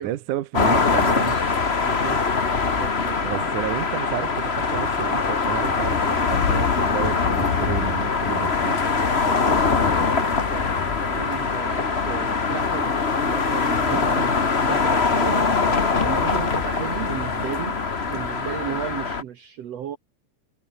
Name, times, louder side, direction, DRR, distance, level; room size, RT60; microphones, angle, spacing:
voice 1, 0.0-1.4 3.2-8.8 13.9-14.3, right 14 dB, 80° right, 2.6 m, -31 dB
sound 1, 0.5-19.2, left 4 dB, 30° left, 1.3 m, -23 dB
voice 2, 1.8-2.2 2.6-3.6 9.2-14.3 14.7-17.8 18.1-20.0, right 9 dB, 60° right, 2.3 m, -34 dB
sound 2, 5.6-18.6, left 7 dB, 80° left, 4.6 m, -33 dB
Guitar, 11.2-17.0, left 3 dB, 50° left, 7.1 m, -50 dB
omnidirectional pair, 3.5 m